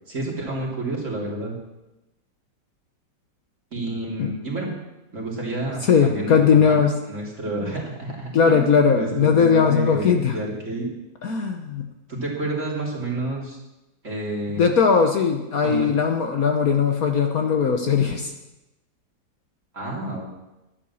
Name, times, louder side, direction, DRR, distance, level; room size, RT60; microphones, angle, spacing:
voice 1, 0.1-1.6 3.7-4.7 5.1-6.8 7.1-8.6 8.9-10.9 12.1-13.6 14.0-14.6 15.6-15.9 19.7-20.2, right 2 dB, 45° right, -2 dB, 3.5 m, -29 dB
voice 2, 5.8-6.9 7.6-7.7 8.3-10.4 11.2-11.9 14.5-18.3, left 6 dB, 55° left, 4 dB, 1.4 m, -19 dB
11.5 x 10.5 x 7.0 m, 0.99 s
omnidirectional pair, 1.9 m